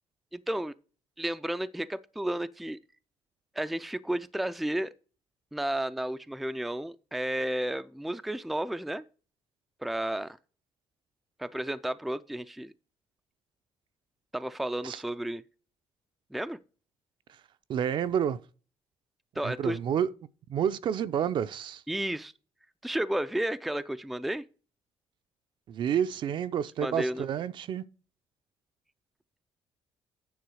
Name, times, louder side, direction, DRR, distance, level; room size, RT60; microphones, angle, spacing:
voice 1, 0.3-0.7 1.2-2.8 3.6-4.9 5.5-9.0 9.8-10.4 11.4-12.7 14.3-15.4 16.3-16.6 19.4-19.8 21.9-22.3 22.8-24.4 26.8-27.3, right 1 dB, ahead, 0.3 m, -32 dB
voice 2, 17.7-18.4 19.4-20.1 20.5-21.8 25.7-27.8, right 9 dB, 55° right, 0.5 m, -29 dB
9.6 x 3.8 x 6.2 m
cardioid pair, 130°, 10 cm